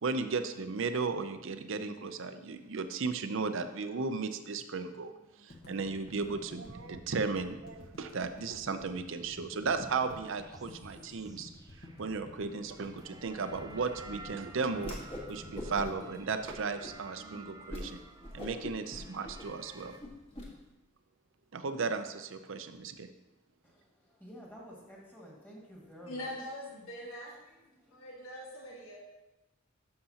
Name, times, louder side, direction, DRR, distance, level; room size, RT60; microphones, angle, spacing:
voice 1, 0.0-5.1 5.4-11.5 12.0-18.0 18.3-20.0 21.5-23.1, right 4 dB, 65° right, 9 dB, 0.6 m, -35 dB
sound 1, 5.5-17.7, left 2 dB, 50° left, 1.4 m, -52 dB
sound 2, 10.3-20.0, right 2 dB, 20° right, 0.5 m, -53 dB
Whoosh swoosh swish, 14.8-15.3 15.5-16.1 16.4-16.9 17.3-17.4 17.7-17.9 18.2-20.5, left 1 dB, 30° left, 1.6 m, -42 dB
voice 2, 23.6-26.3 27.5-28.1, equal, 10° left, -3 dB, 1.9 m, -52 dB
voice 3, 26.1-27.3 27.9-29.0, left 1 dB, 70° left, -4 dB, 1.8 m, -42 dB
11.0 x 6.6 x 2.9 m, 0.99 s
head